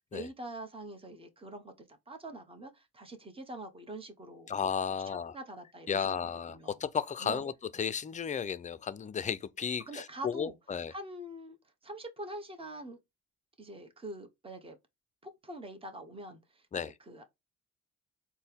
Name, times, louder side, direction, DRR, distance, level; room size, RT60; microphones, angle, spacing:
voice 1, 0.1-4.5 4.9-6.8 7.2-7.4 9.8-10.6 10.9-11.6 11.8-13.0 13.6-14.8 15.2-17.3, right 1 dB, 20° right, 1.0 m, -45 dB
voice 2, 4.5-5.3 5.9-10.9 16.7-16.9, left 7 dB, 25° left, 0.4 m, -34 dB
4.2 x 2.2 x 3.5 m
cardioid pair, 90°, 30 cm